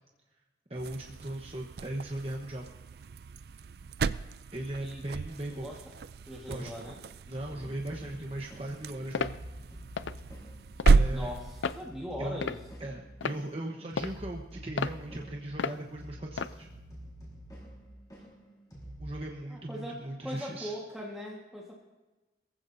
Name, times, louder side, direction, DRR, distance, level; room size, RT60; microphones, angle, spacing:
voice 1, 0.7-2.6 4.5-5.7 6.5-6.8 7.3-9.4 10.9-11.3 12.2-12.4 12.8-16.7 19.0-20.7, right 1 dB, 30° right, 0 dB, 1.1 m, -38 dB
sound 1, 0.7-11.9, right 4 dB, 55° right, 0.4 m, -32 dB
voice 2, 5.5-5.9 6.3-7.0 7.5-7.8 11.1-12.7 19.5-21.9, equal, 5° right, -4 dB, 1.6 m, -41 dB
sound 2, 7.3-19.2, equal, 20° left, 4.6 m, -48 dB
sound 3, 9.1-9.4 10.0-10.2 10.8-11.0 11.6-11.9 12.4-12.8 13.2-13.4 14.0-14.2 14.8-15.0 15.6-15.8 16.4-16.5, left 5 dB, 85° left, 0.5 m, -32 dB
23.0 x 15.0 x 2.7 m, 1.2 s
head